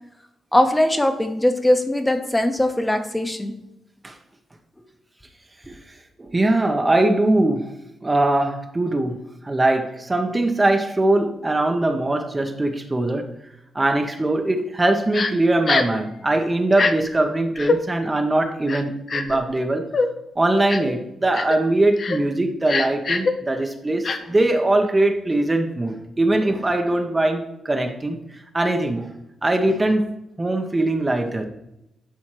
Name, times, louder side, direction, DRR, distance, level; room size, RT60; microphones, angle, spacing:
voice 1, 0.5-3.5, left 1 dB, 15° left, 5 dB, 1.2 m, -20 dB
voice 2, 6.2-7.7 8.0-13.3 13.7-19.9 20.4-28.2 28.5-29.1 29.4-30.1 30.4-31.5, right 2 dB, 25° right, 4 dB, 1.0 m, -21 dB
Crying sobbing, 15.1-15.3 15.7-16.0 16.7-16.9 17.6-17.8 18.7-19.4 19.9-20.1 20.7-20.9 21.3-21.6 22.0-22.2 22.7-23.3 24.0-24.2, left 4 dB, 55° left, 0.7 m, -22 dB
11.5 x 4.2 x 3.2 m, 0.88 s
hypercardioid pair, 40°, 0 cm